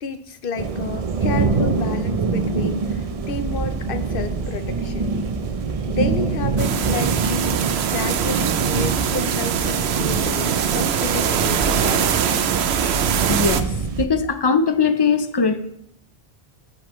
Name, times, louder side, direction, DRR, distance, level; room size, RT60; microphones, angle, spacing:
voice 1, 0.0-5.2 5.9-7.5 7.8-12.3, left 4 dB, 60° left, 9 dB, 0.9 m, -30 dB
sound 1, 0.6-14.1, right 4 dB, 45° right, 0.6 m, -25 dB
sound 2, 6.6-13.6, right 8 dB, 80° right, 0.9 m, -22 dB
voice 2, 13.2-15.6, left 5 dB, 30° left, 8 dB, 0.5 m, -20 dB
12.5 x 6.6 x 3.1 m, 0.73 s
omnidirectional pair, 1.1 m